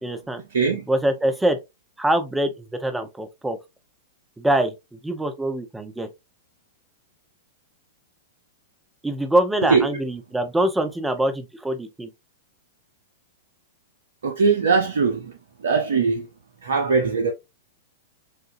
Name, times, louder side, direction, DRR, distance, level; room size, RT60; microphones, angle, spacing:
voice 1, 0.0-0.4 0.9-1.6 2.0-3.6 4.4-6.1 9.0-12.1, right 1 dB, 5° right, 1.0 m, -24 dB
voice 2, 0.5-0.9 9.6-9.9 14.2-15.3 15.6-16.2 16.6-17.3, right 5 dB, 70° right, 0.8 m, -20 dB
6.7 x 2.6 x 2.6 m
hypercardioid pair, 105°, 0 cm